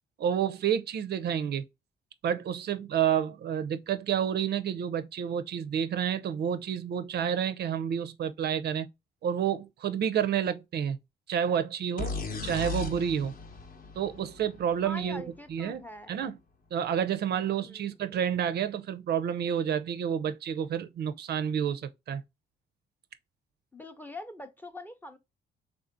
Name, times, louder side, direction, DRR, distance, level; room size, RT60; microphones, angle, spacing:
voice 1, 0.2-1.6 2.2-8.9 9.2-11.0 11.3-12.1 12.4-13.3 14.0-15.2 15.5-15.8 16.1-16.4 16.7-22.2, right 8 dB, 55° right, 0.4 m, -29 dB
sound 1, 12.0-15.7, left 4 dB, 45° left, 0.8 m, -37 dB
voice 2, 14.8-16.2 17.6-17.9 23.7-25.2, left 1 dB, 10° left, 0.5 m, -43 dB
3.6 x 2.5 x 2.5 m
cardioid pair, 90°, 20 cm